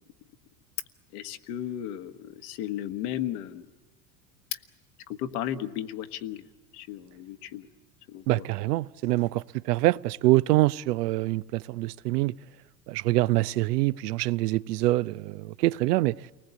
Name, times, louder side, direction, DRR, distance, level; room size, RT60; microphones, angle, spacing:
voice 1, 1.1-3.6 5.1-6.4 6.7-7.6 8.1-8.2, left 11 dB, 60° left, 1.6 m, -34 dB
voice 2, 8.3-12.3 12.9-16.2, right 18 dB, 70° right, 0.7 m, -25 dB
29.5 x 19.5 x 8.3 m
hypercardioid pair, 85°, 50 cm